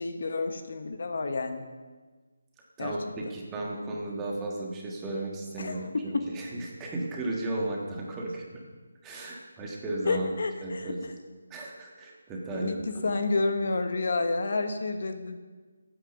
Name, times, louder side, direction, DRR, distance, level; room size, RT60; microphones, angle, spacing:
voice 1, 0.0-1.6 2.8-2.9 5.6-6.3 10.0-10.9 12.5-15.4, left 3 dB, 55° left, 7 dB, 1.1 m, -30 dB
voice 2, 2.8-8.4 9.0-10.3 10.6-11.0 11.5-13.0, right 2 dB, 10° right, -2 dB, 1.4 m, -35 dB
14.5 x 8.9 x 5.2 m, 1.4 s
figure-of-eight pair, 170°, 0 cm